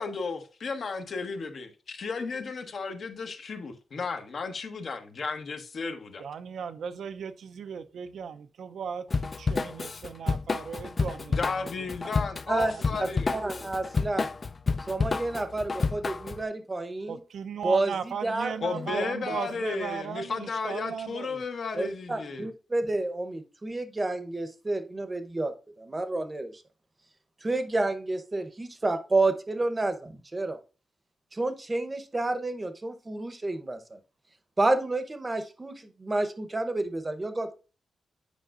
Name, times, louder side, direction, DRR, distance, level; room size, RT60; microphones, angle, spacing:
voice 1, 0.0-6.2 11.3-13.3 18.6-22.5, left 4 dB, 60° left, 0.9 m, -34 dB
voice 2, 6.2-11.4 17.1-21.4, right 7 dB, 75° right, 0.5 m, -37 dB
Drum kit / Drum, 9.1-16.4, left 4 dB, 35° left, 0.3 m, -30 dB
voice 3, 13.0-14.3 14.9-17.2 17.6-19.0 21.7-26.6 27.4-30.6 31.3-34.0 34.6-37.5, right 2 dB, 25° right, 0.8 m, -30 dB
8.2 x 5.1 x 2.4 m
cardioid pair, 100°, 0 cm